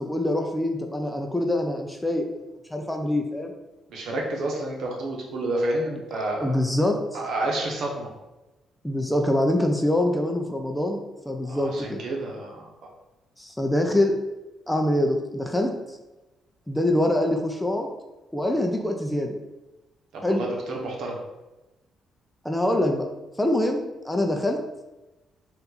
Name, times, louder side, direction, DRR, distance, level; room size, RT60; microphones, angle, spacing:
voice 1, 0.0-2.3 2.7-3.5 5.9-6.0 6.4-7.0 8.8-12.0 13.4-14.2 14.7-15.7 16.7-17.9 18.3-19.4 20.2-20.4 22.4-23.1 23.4-24.6, left 1 dB, 10° left, 3 dB, 0.5 m, -24 dB
voice 2, 3.9-6.5 7.1-8.1 11.4-12.7 20.1-21.2, right 1 dB, 70° right, -1 dB, 1.1 m, -29 dB
4.3 x 2.6 x 4.0 m, 1.0 s
cardioid pair, 90°, 0 cm